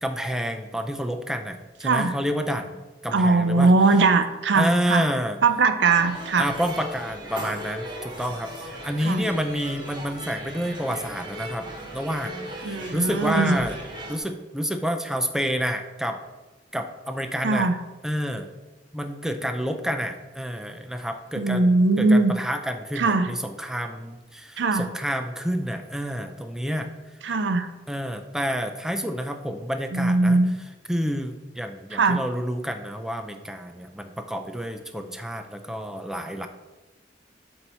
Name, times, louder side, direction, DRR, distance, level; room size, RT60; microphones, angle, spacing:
voice 1, 0.0-2.8 3.0-3.7 4.5-5.4 6.4-11.7 11.9-13.8 14.1-16.2 16.7-17.7 18.0-18.5 18.9-21.7 22.0-26.9 27.9-30.4 30.9-36.5, equal, 5° right, 6 dB, 0.4 m, -29 dB
voice 2, 1.8-2.1 3.1-5.1 5.4-6.5 9.0-9.2 12.6-13.6 17.4-17.8 21.4-22.3 23.0-23.3 24.6-24.9 27.2-27.7 29.9-30.6 31.9-32.2, right 3 dB, 90° right, 9 dB, 0.5 m, -20 dB
sound 1, 5.8-14.2, right 1 dB, 25° right, 1.1 m, -38 dB
6.6 x 4.4 x 4.2 m, 1.2 s
head